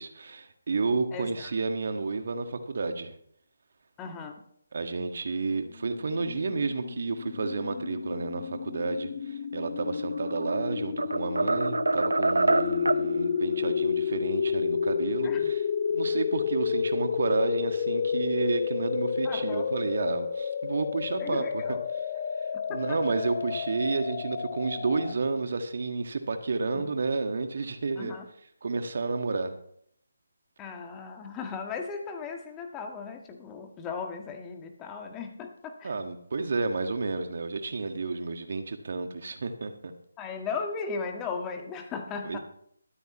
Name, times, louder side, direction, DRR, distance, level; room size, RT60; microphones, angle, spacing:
voice 1, 0.0-3.1 4.7-15.6 15.9-21.8 22.7-28.2 28.6-29.6 35.8-39.9 42.2-42.4, right 3 dB, 55° right, 7 dB, 1.7 m, -31 dB
voice 2, 1.1-1.5 4.0-4.3 15.2-15.5 19.2-19.6 21.2-21.8 22.7-23.0 26.7-26.9 28.0-28.2 30.6-35.9 40.2-42.4, left 5 dB, 15° left, 4 dB, 1.6 m, -37 dB
sound 1, 6.0-25.1, left 7 dB, 40° left, 0.6 m, -31 dB
sound 2, 10.1-10.6 11.0-13.1, right 2 dB, 80° right, 0.6 m, -26 dB
23.0 x 9.1 x 3.1 m, 0.67 s
figure-of-eight pair, 150°, 0 cm